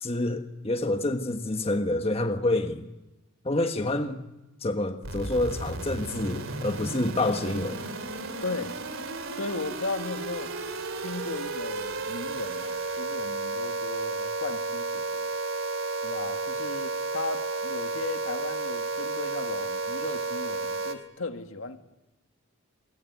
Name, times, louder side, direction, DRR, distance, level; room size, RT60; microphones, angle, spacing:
voice 1, 0.0-2.9 3.4-4.2 4.6-7.9, left 2 dB, 30° left, 1.4 m, -28 dB
sound 1, 5.0-20.9, right 3 dB, 75° right, 2.9 m, -33 dB
voice 2, 8.4-8.8 9.4-10.5 11.0-15.3 16.0-21.8, left 3 dB, 75° left, 2.0 m, -36 dB
27.5 x 23.0 x 9.5 m
head